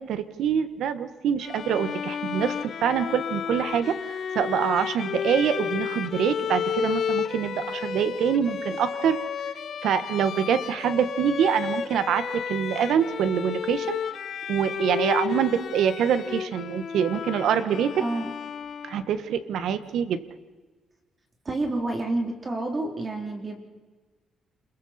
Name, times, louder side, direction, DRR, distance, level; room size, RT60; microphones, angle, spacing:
voice 1, 0.0-9.2 9.8-14.0 14.5-18.0 18.8-20.2, right 8 dB, 75° right, 12 dB, 1.3 m, -25 dB
Bowed string instrument, 1.4-19.2, left 7 dB, 55° left, 1.1 m, -32 dB
voice 2, 18.0-18.3 21.4-23.6, right 2 dB, 25° right, 2 dB, 3.3 m, -29 dB
29.0 x 22.0 x 4.3 m, 1.3 s
cardioid pair, 120°, 0 cm